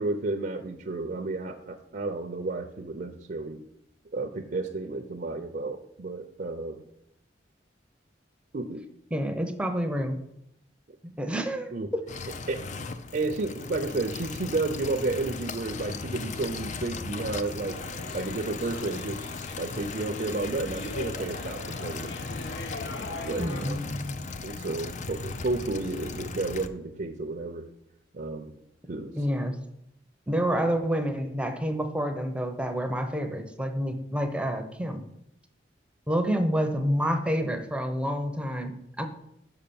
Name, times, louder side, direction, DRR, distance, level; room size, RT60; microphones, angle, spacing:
voice 1, 0.0-3.6 4.1-6.8 8.5-8.9 11.7-11.9 12.5-12.6 13.1-17.8 18.1-19.3 19.6-22.1 23.1-23.8 24.4-27.7 28.1-28.5 28.9-29.2, right 2 dB, 50° right, 4 dB, 0.6 m, -32 dB
voice 2, 9.1-10.2 11.0-12.0 23.4-24.2 29.1-29.6 30.3-35.0 36.1-39.1, equal, 5° right, 6 dB, 0.7 m, -28 dB
sound 1, 12.1-26.7, left 4 dB, 45° left, 0.5 m, -37 dB
sound 2, 17.7-23.7, left 2 dB, 85° left, 1.0 m, -41 dB
5.8 x 5.7 x 6.9 m, 0.79 s
head